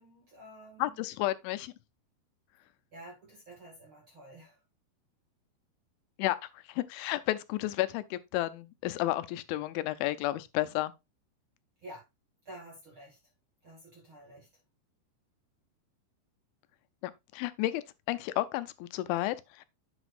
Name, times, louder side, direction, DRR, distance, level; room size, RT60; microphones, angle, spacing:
voice 1, 0.0-0.9 2.9-4.6 11.8-12.0 12.4-13.2 13.6-14.5, right 1 dB, 50° right, 1.6 m, -50 dB
voice 2, 0.8-1.7 6.2-10.9 17.0-19.7, left 16 dB, 85° left, 3.1 m, -32 dB
8.0 x 7.9 x 2.5 m
omnidirectional pair, 5.3 m